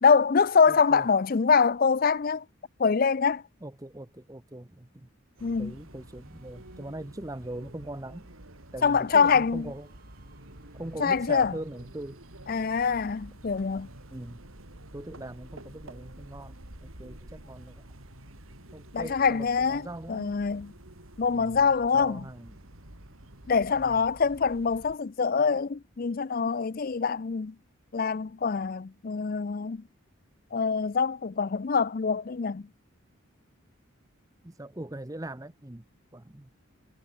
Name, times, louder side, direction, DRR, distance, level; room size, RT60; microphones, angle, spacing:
voice 1, 0.0-2.4 2.8-3.4 5.4-5.7 8.8-9.7 11.0-11.5 12.5-13.9 18.9-20.7 21.2-22.2 23.5-27.5 27.9-29.8 30.5-32.7, left 5 dB, 45° left, 0.4 m, -24 dB
voice 2, 0.7-1.1 3.6-5.1 5.6-8.3 8.7-9.9 10.8-12.2 14.1-14.4 14.9-16.6 16.8-17.8 18.7-20.4 21.3-21.7 21.9-22.6 23.8-24.1 34.4-35.8 36.1-36.5, right 1 dB, 15° right, 0.8 m, -41 dB
sound 1, 5.3-14.1, right 2 dB, 45° right, 6.2 m, -64 dB
sound 2, 5.4-25.0, right 1 dB, 90° right, 4.5 m, -49 dB
head